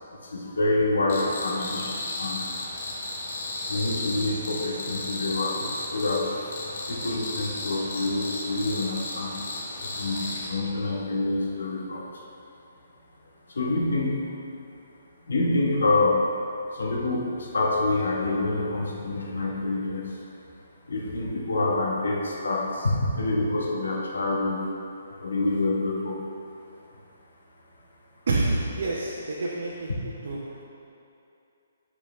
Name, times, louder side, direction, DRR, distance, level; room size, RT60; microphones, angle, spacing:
voice 1, 0.2-2.4 3.7-6.4 6.9-9.3 9.8-12.1 13.5-14.3 15.3-16.3 16.7-20.2 20.9-24.6 25.2-26.2, left 2 dB, 90° left, -1 dB, 1.2 m, -27 dB
Cricket, 1.1-10.5, left 2 dB, 55° left, 1.4 m, -34 dB
voice 2, 28.3-29.9 30.2-30.4, right 2 dB, 65° right, -4 dB, 0.8 m, -27 dB
9.0 x 4.8 x 3.2 m, 2.7 s
hypercardioid pair, 165°, 0 cm